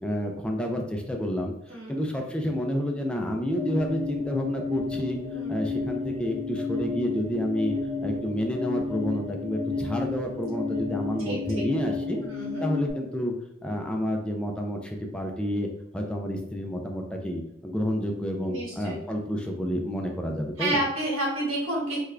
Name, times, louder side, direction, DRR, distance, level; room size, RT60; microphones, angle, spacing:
voice 1, 0.0-5.2 5.5-7.8 8.0-12.2 12.6-13.3 13.6-20.8, equal, 5° left, 1 dB, 0.3 m, -29 dB
sound 1, 3.5-12.9, left 3 dB, 90° left, 0.6 m, -32 dB
voice 2, 11.2-11.6 12.2-12.7 18.4-18.9 20.6-22.0, right 1 dB, 90° right, -4 dB, 1.4 m, -30 dB
3.5 x 2.2 x 3.1 m, 0.83 s
head